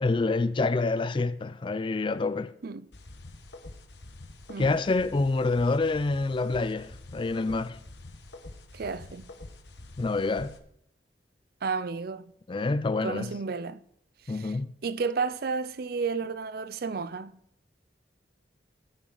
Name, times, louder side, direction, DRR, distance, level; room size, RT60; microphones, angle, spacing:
voice 1, 0.0-2.5 4.6-7.8 10.0-10.6 12.5-13.3 14.3-14.7, left 3 dB, 30° left, 0.4 m, -27 dB
sound 1, 2.9-10.6, left 2 dB, 70° left, 1.4 m, -46 dB
voice 2, 8.7-9.3 11.6-12.3 13.0-13.8 14.3-14.5 14.8-17.4, right 5 dB, 60° right, 0.5 m, -32 dB
19.0 x 6.5 x 3.9 m
head